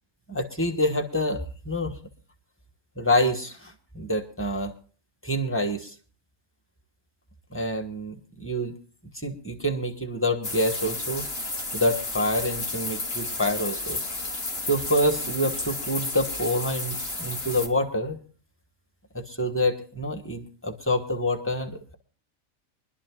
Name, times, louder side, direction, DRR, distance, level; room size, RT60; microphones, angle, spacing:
voice 1, 0.3-2.0 3.0-4.7 5.2-5.9 7.5-8.8 9.1-11.3 11.7-14.0 14.7-18.2 19.1-21.9, left 1 dB, 10° left, 6 dB, 1.3 m, -27 dB
sound 1, 10.4-17.7, left 2 dB, 50° left, 2.1 m, -32 dB
24.5 x 12.0 x 2.4 m, 0.39 s
omnidirectional pair, 1.4 m